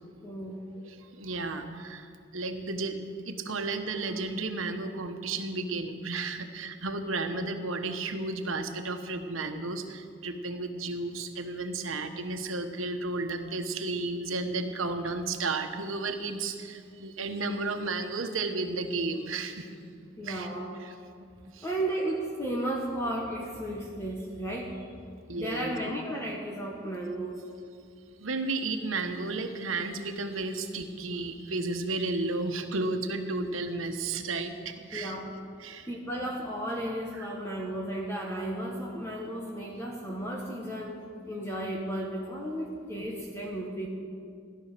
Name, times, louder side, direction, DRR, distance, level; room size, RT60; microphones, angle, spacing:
voice 1, 0.2-0.6 20.2-20.8 21.6-24.9 25.3-27.4 34.9-35.3 35.9-41.0 41.3-43.9, right 1 dB, 15° left, -2 dB, 1.4 m, -34 dB
voice 2, 0.9-19.8 20.2-20.5 20.8-20.9 21.5-21.7 25.3-25.8 28.2-35.2 35.6-35.9 37.1-37.3, right 3 dB, 85° right, 6 dB, 1.3 m, -33 dB
16.0 x 11.5 x 6.8 m, 2.3 s
head